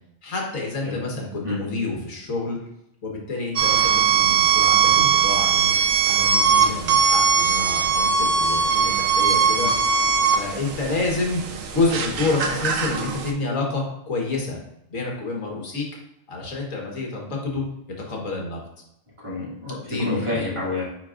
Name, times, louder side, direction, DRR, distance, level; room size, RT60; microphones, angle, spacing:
voice 1, 0.2-2.6 3.0-5.7 6.1-9.7 10.3-11.4 11.7-14.6 14.9-15.9 16.3-17.6 18.1-18.6 19.8-20.4, left 3 dB, 90° left, 0 dB, 1.9 m, -28 dB
sound 1, 3.6-13.3, right 6 dB, 85° right, 1.2 m, -20 dB
voice 2, 19.2-20.8, left 2 dB, 25° right, -8 dB, 2.8 m, -28 dB
9.5 x 4.5 x 2.5 m, 0.80 s
omnidirectional pair, 1.3 m